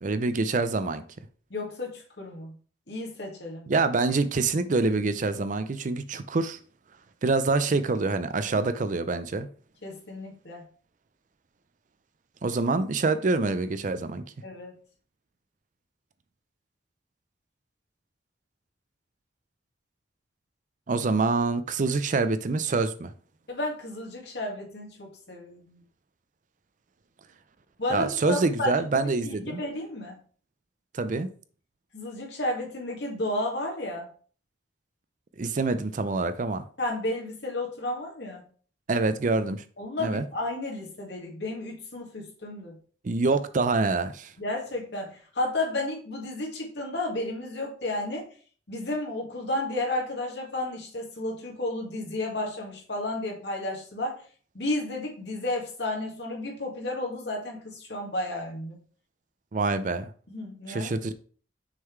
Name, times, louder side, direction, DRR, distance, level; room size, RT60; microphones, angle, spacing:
voice 1, 0.0-1.0 3.7-6.6 7.2-9.5 12.4-14.2 20.9-23.1 27.9-29.6 30.9-31.3 35.4-36.6 38.9-39.6 40.0-40.2 43.0-44.3 59.5-60.1 60.7-61.1, right 3 dB, 45° right, 0.5 m, -26 dB
voice 2, 1.5-2.6 2.9-3.7 9.8-10.6 14.4-14.7 23.5-25.8 27.8-30.2 31.9-34.1 36.8-38.4 39.8-42.8 44.4-48.3 48.7-54.2 54.5-58.8 60.3-60.9, left 1 dB, 65° left, 2.0 m, -32 dB
6.2 x 3.8 x 4.6 m
head